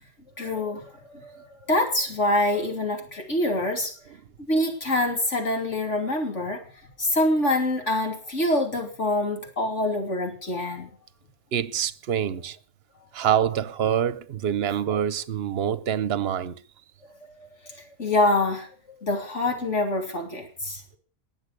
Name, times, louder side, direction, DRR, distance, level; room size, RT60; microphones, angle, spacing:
voice 1, 0.4-4.1 4.4-6.6 7.0-10.9 17.1-18.7 19.0-20.8, left 1 dB, 70° left, 3.4 m, -26 dB
voice 2, 11.5-12.6 13.1-16.6, right 9 dB, 55° right, 1.0 m, -25 dB
20.5 x 7.4 x 8.3 m
omnidirectional pair, 1.3 m